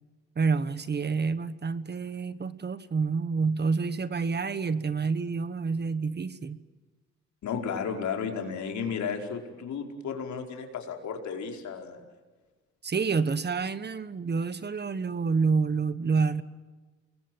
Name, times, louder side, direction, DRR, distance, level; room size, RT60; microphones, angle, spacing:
voice 1, 0.4-6.6 12.8-16.4, right 5 dB, 35° right, 14 dB, 1.3 m, -28 dB
voice 2, 7.4-12.0, left 6 dB, 70° left, 3 dB, 4.8 m, -33 dB
29.0 x 22.0 x 9.3 m, 1.3 s
cardioid pair, 90°, 30 cm